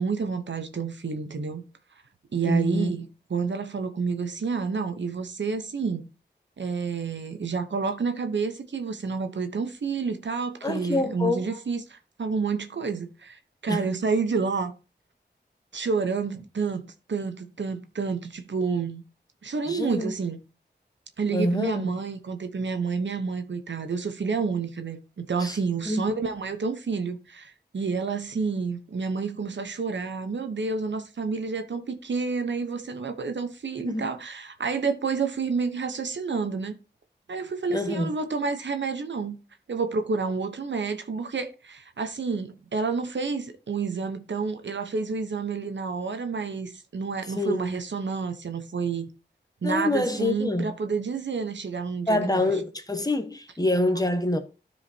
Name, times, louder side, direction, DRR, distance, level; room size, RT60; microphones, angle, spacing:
voice 1, 0.0-1.6 2.3-6.1 6.6-14.7 15.7-19.0 19.4-20.4 21.2-36.8 37.3-39.4 39.7-49.1 49.6-52.5, right 5 dB, 85° right, 0.9 m, -29 dB
voice 2, 2.4-2.9 10.6-11.5 13.7-13.9 19.7-20.1 21.3-22.0 25.4-25.6 25.8-26.0 33.8-34.1 37.7-38.1 47.3-47.7 49.6-50.7 52.1-54.4, left 2 dB, 20° left, 1.0 m, -26 dB
13.0 x 4.9 x 2.8 m
wide cardioid pair, 70°, 18 cm